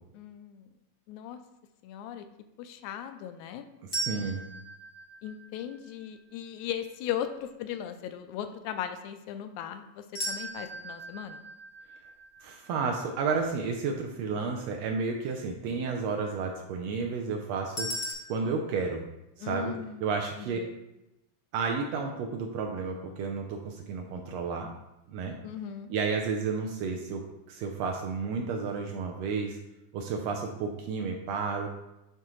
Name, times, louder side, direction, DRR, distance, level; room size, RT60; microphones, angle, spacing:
voice 1, 0.1-0.7 1.1-1.4 1.8-2.3 2.6-3.7 5.2-11.4 19.4-20.0 20.4-20.8 25.4-25.9, left 10 dB, 85° left, 8 dB, 1.9 m, -38 dB
sound 1, 3.9-6.0 10.1-13.3 17.8-18.1, right 1 dB, 50° left, 0.8 m, -37 dB
voice 2, 4.0-4.5 12.4-17.9 18.3-19.0 19.4-19.7 20.0-20.6 21.5-24.7 25.1-25.4 25.9-27.2 27.5-29.6 29.9-31.7, right 5 dB, 80° right, 2 dB, 1.6 m, -31 dB
9.0 x 3.6 x 3.0 m, 0.91 s
omnidirectional pair, 3.3 m